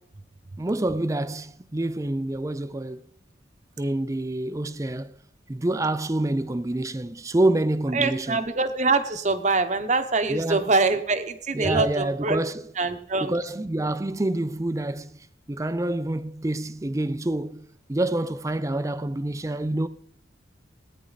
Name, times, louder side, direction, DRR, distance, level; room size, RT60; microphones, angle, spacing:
voice 1, 0.6-3.1 3.8-5.1 5.5-8.4 10.3-10.7 11.5-12.7 13.2-19.9, right 1 dB, 15° right, 0.4 m, -27 dB
voice 2, 7.9-12.4 12.8-13.3, right 3 dB, 35° right, 0.9 m, -24 dB
18.0 x 9.5 x 4.0 m
head